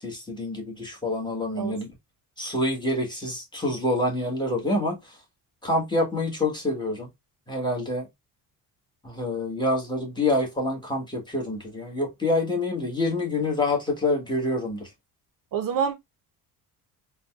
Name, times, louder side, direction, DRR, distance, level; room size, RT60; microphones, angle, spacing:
voice 1, 0.0-1.9 2.4-5.1 5.6-7.1 7.5-8.1 9.0-14.9, left 2 dB, 10° left, 1.4 m, -27 dB
voice 2, 15.5-15.9, right 7 dB, 55° right, 0.7 m, -26 dB
3.8 x 2.3 x 2.4 m
cardioid pair, 105°, 41 cm